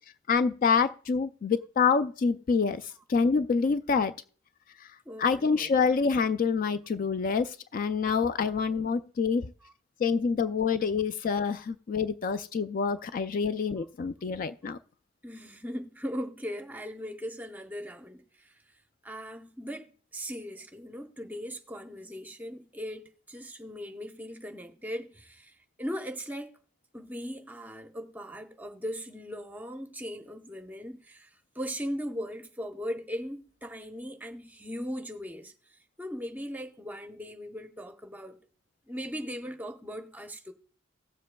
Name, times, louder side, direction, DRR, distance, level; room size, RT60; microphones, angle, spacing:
voice 1, 0.3-4.1 4.8-4.9 5.2-9.5 10.0-14.8, left 5 dB, 45° left, 0.3 m, -27 dB
voice 2, 5.1-5.8 15.2-18.2 19.0-26.6 26.9-31.3 31.5-35.5 36.0-38.4 38.9-40.5, equal, 10° right, 0.8 m, -39 dB
17.5 x 7.5 x 2.2 m
head